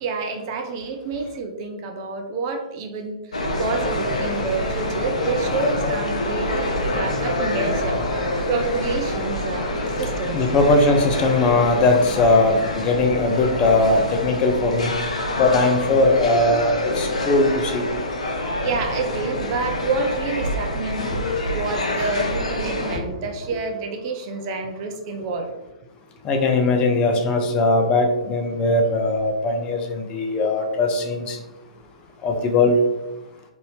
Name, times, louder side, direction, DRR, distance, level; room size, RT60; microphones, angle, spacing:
voice 1, 0.0-3.2 3.6-8.0 8.5-10.4 12.2-12.3 18.6-21.2 21.5-25.5, right 4 dB, 40° right, 4 dB, 0.4 m, -28 dB
sound 1, 3.3-23.0, left 1 dB, 75° left, 0.6 m, -26 dB
voice 2, 6.6-7.4 8.4-8.5 9.5-14.9 15.4-17.8 26.3-31.4 32.2-32.8, left 2 dB, 25° left, 3 dB, 0.5 m, -20 dB
2.6 x 2.6 x 3.2 m, 0.99 s
figure-of-eight pair, 115°, 4 cm